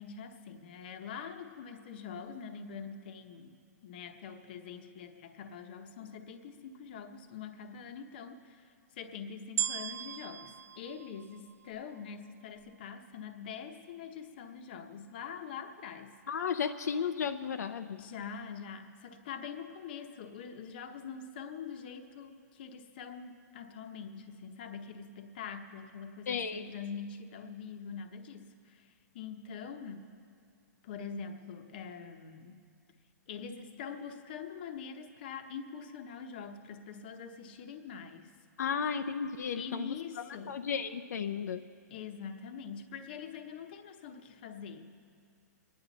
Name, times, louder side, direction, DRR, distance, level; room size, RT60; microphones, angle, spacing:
voice 1, 0.0-3.6 3.8-16.2 18.0-30.1 30.8-32.6 33.3-38.3 39.6-40.6 41.9-44.9, left 6 dB, 35° left, 6 dB, 0.9 m, -44 dB
sound 1, 9.6-12.0 12.6-12.7, right 9 dB, 55° right, 0.5 m, -37 dB
voice 2, 16.3-18.0 26.3-26.6 38.6-39.9 40.5-41.6, left 6 dB, 65° left, 8 dB, 0.6 m, -33 dB
25.0 x 10.0 x 4.1 m, 2.2 s
hypercardioid pair, 175°, 10 cm